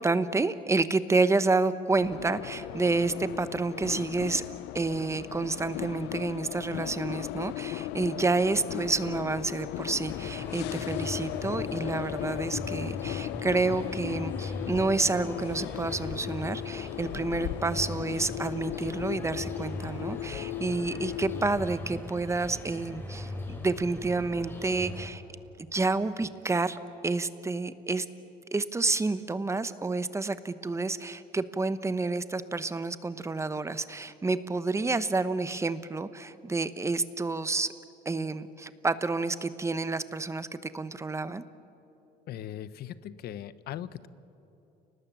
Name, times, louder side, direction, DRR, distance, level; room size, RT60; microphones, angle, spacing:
voice 1, 0.0-4.4 4.7-25.2 25.6-28.0 28.5-37.7 38.0-41.4, right 3 dB, 15° right, 13 dB, 1.0 m, -29 dB
sound 1, 2.0-21.7, left 16 dB, 85° left, 0.5 m, -37 dB
sound 2, 10.1-25.1, left 1 dB, 15° left, 4.3 m, -40 dB
voice 2, 42.3-44.1, left 11 dB, 70° left, 15 dB, 0.9 m, -39 dB
30.0 x 19.5 x 7.5 m, 2.9 s
cardioid pair, 110°, 17 cm